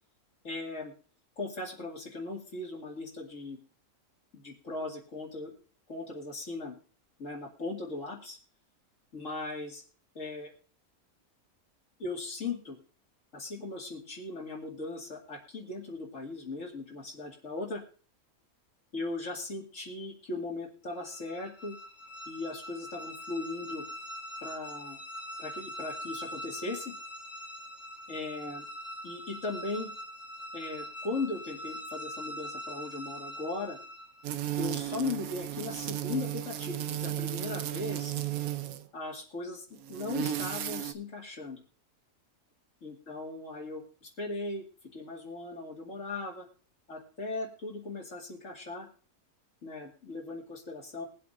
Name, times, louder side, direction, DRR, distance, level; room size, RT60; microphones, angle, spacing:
voice 1, 0.4-0.9 1.4-3.6 4.3-5.6 5.9-6.8 7.2-8.4 9.1-9.8 10.1-10.5 12.0-12.8 13.3-17.8 18.9-21.8 22.3-23.8 24.4-25.0 25.4-26.9 28.1-28.7 29.0-29.9 30.5-33.8 34.6-38.1 38.9-41.6 42.8-44.6 44.9-46.5 46.9-48.9 49.6-51.0, left 3 dB, 60° left, 0 dB, 2.6 m, -38 dB
sound 1, 20.9-34.3, equal, 10° left, 1.1 m, -43 dB
sound 2, 34.2-38.9 39.8-40.9, right 11 dB, 75° right, 1.1 m, -34 dB
22.5 x 7.7 x 2.6 m, 0.42 s
omnidirectional pair, 1.5 m